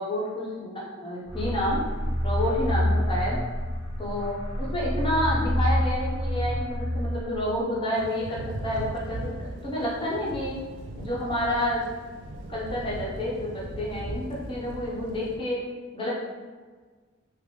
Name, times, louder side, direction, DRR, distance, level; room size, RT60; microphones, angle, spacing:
voice 1, 0.0-1.8 2.2-3.4 4.0-10.5 11.0-11.9 12.5-15.6 15.9-16.1, left 1 dB, 25° left, -6 dB, 0.8 m, -29 dB
sound 1, 1.3-7.8, equal, 80° left, 1.0 m, -28 dB
Thunder / Rain, 7.9-15.4, right 1 dB, 55° right, 0.3 m, -38 dB
3.3 x 2.0 x 3.0 m, 1.4 s
head